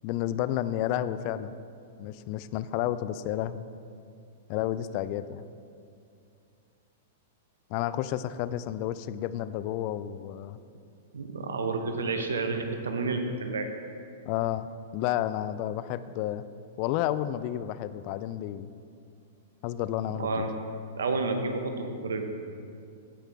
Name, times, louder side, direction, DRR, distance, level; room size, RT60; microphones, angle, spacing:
voice 1, 0.0-1.5 2.0-3.6 4.5-5.4 7.7-10.6 14.3-16.4 16.8-18.7 19.6-20.4, left 12 dB, 45° left, 15 dB, 0.3 m, -31 dB
voice 2, 11.1-13.7 20.1-20.5 21.0-22.3, right 3 dB, 80° right, 6 dB, 0.9 m, -30 dB
15.0 x 5.7 x 3.5 m, 2.4 s
hypercardioid pair, 115°, 0 cm